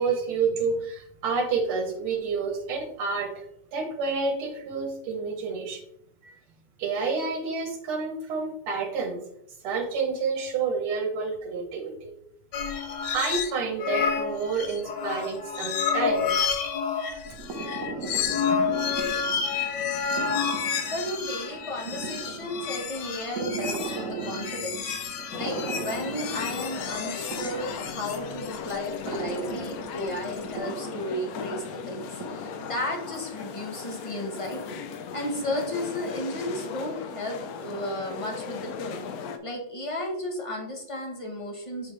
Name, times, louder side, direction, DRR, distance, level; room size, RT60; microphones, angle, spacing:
voice 1, 0.0-5.8 6.2-6.4 6.8-9.2 9.6-12.1 12.7-12.8 13.1-16.6, right 4 dB, 90° right, 2 dB, 1.9 m, -29 dB
sound 1, 12.5-13.5 13.8-30.5, left 6 dB, 65° left, 1.2 m, -30 dB
sound 2, 17.2-32.7, right 4 dB, 55° right, 1.0 m, -38 dB
voice 2, 20.9-39.1 39.4-41.9, left 1 dB, 30° left, 1 dB, 0.6 m, -34 dB
sound 3, 25.3-39.4, left 6 dB, 85° left, 0.8 m, -37 dB
7.9 x 4.3 x 3.2 m, 0.77 s
omnidirectional pair, 2.3 m